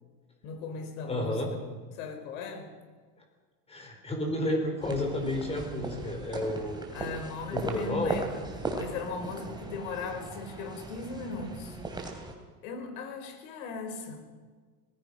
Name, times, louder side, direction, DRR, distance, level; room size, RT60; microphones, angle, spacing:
voice 1, 0.4-2.7 6.9-8.4 8.7-12.2 12.6-14.3, left 4 dB, 60° left, 6 dB, 4.8 m, -38 dB
voice 2, 1.1-1.5 3.7-6.9 7.5-8.2, left 1 dB, 15° left, 3 dB, 4.5 m, -31 dB
sound 1, 4.8-12.3, right 3 dB, 10° right, 2.9 m, -38 dB
26.0 x 19.5 x 5.6 m, 1.5 s
supercardioid pair, 145°, 46 cm